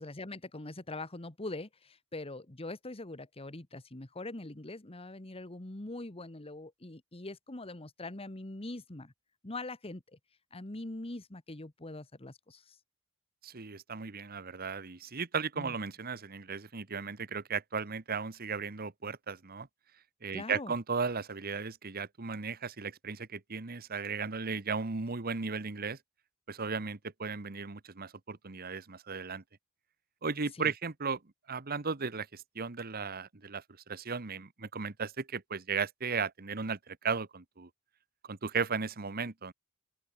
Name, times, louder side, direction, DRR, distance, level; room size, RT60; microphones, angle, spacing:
voice 1, 0.0-9.1 9.4-10.0 10.5-12.7 15.6-15.7 20.3-20.7 30.5-30.7, left 2 dB, 25° left, 1.4 m, -42 dB
voice 2, 13.4-19.7 20.2-26.0 26.5-29.4 30.2-31.2 31.5-37.7 38.3-39.5, right 5 dB, 45° right, 1.2 m, -36 dB
open air
head